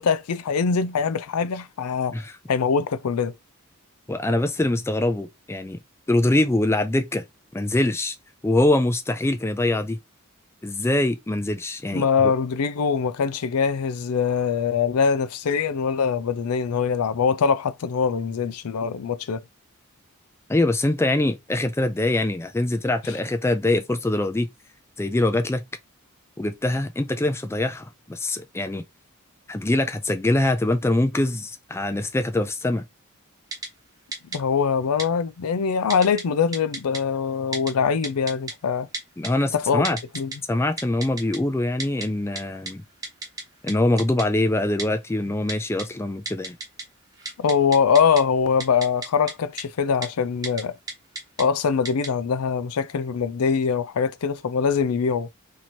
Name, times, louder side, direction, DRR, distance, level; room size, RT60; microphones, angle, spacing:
voice 1, 0.0-2.2 2.5-3.4 11.9-19.4 34.3-38.9 39.5-39.9 40.1-40.3 47.4-50.8 51.4-55.3, left 6 dB, 80° left, 0.4 m, -23 dB
voice 2, 4.1-5.8 6.1-7.2 7.5-8.1 8.4-10.0 10.6-12.3 20.5-24.5 25.0-25.6 26.4-28.8 29.5-32.8 39.2-40.0 40.5-42.8 43.6-46.6, left 1 dB, 10° left, 0.4 m, -23 dB
Typing, 33.5-33.7 34.1-34.4 35.0-35.1 35.9-36.2 36.5-37.0 37.5-37.7 38.0-38.5 38.9-39.3 39.8-40.4 40.8-41.4 41.8-42.1 42.4-42.5 42.7-42.8 43.0-43.4 43.7-43.8 44.0-44.2 44.8-44.9 45.5-45.8 46.3-46.8 47.1-48.2 48.6-49.3 49.6-49.7 50.0-50.1 50.4-50.6 50.9-51.4 51.8-52.1, right 2 dB, 15° right, 1.0 m, -32 dB
3.0 x 2.8 x 4.2 m
head